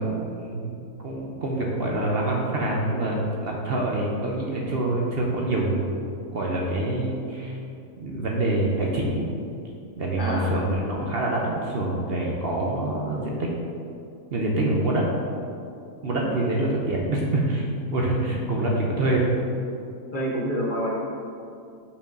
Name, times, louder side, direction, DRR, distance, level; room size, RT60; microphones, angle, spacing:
voice 1, 0.0-5.9 6.3-7.6 8.0-9.3 10.0-13.5 14.3-15.0 16.0-17.6 17.9-19.3, right 2 dB, 50° right, -2 dB, 0.9 m, -26 dB
voice 2, 10.2-10.6 16.2-16.3 20.1-20.9, equal, 45° left, -3 dB, 0.9 m, -28 dB
5.4 x 5.0 x 5.2 m, 2.5 s
omnidirectional pair, 1.4 m